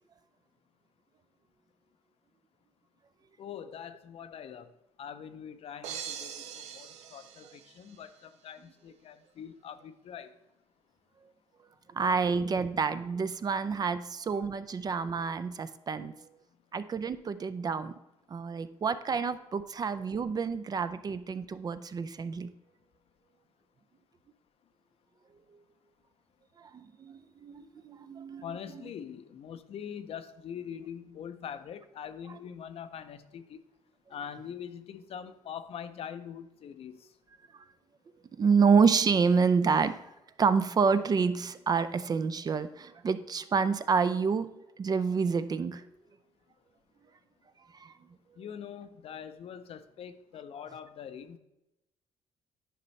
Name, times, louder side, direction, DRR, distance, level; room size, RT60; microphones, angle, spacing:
voice 1, 3.4-4.7 5.0-10.3 28.4-33.6 34.1-37.1 48.4-51.4, left 8 dB, 60° left, 11 dB, 0.5 m, -43 dB
sound 1, 5.8-8.1, right 8 dB, 85° right, 0.6 m, -42 dB
voice 2, 11.9-16.1 16.7-17.9 18.3-22.5 26.7-28.4 37.5-37.6 38.4-40.0 40.4-45.9 47.7-47.9, right 5 dB, 35° right, 13 dB, 0.4 m, -28 dB
9.9 x 5.2 x 3.2 m, 0.93 s
cardioid pair, 95°, 11 cm